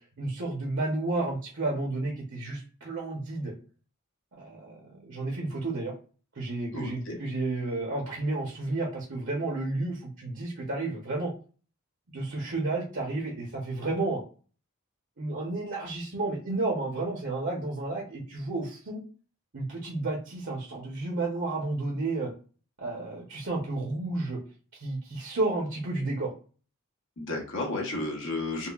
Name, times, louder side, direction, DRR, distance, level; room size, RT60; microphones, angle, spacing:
voice 1, 0.2-3.5 4.4-5.9 6.3-11.3 12.1-14.2 15.2-19.0 19.5-22.3 22.8-24.4 24.8-26.3, right 2 dB, 55° right, -2 dB, 0.8 m, -31 dB
voice 2, 6.7-7.2 27.2-28.7, left 2 dB, 60° left, 0 dB, 1.0 m, -32 dB
5.5 x 2.1 x 2.3 m, 0.38 s
head